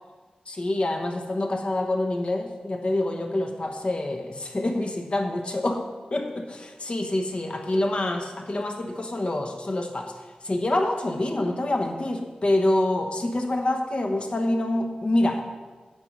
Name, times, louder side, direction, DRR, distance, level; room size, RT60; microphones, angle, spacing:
voice 1, 0.5-5.8 6.1-10.1 10.4-15.4, left 1 dB, 45° left, 4 dB, 1.3 m, -26 dB
9.4 x 7.3 x 5.4 m, 1.3 s
wide cardioid pair, 100°, 3 cm